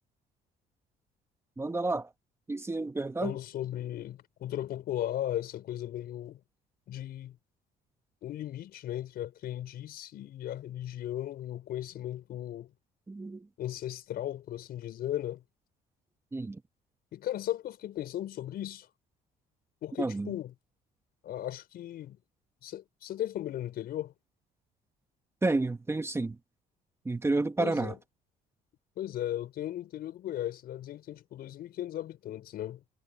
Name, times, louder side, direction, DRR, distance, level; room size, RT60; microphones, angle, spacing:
voice 1, 1.6-2.1 2.5-3.3 13.1-13.4 16.3-16.6 20.0-20.3 25.4-26.4 27.0-27.9, right 2 dB, 15° right, 1.4 m, -30 dB
voice 2, 3.2-6.4 6.9-7.4 8.2-12.7 13.6-15.4 17.1-18.9 19.8-20.5 21.2-22.2 22.6-24.1 27.6-28.0 29.0-32.8, left 12 dB, 65° left, 5.3 m, -36 dB
cardioid pair, 110°, 17 cm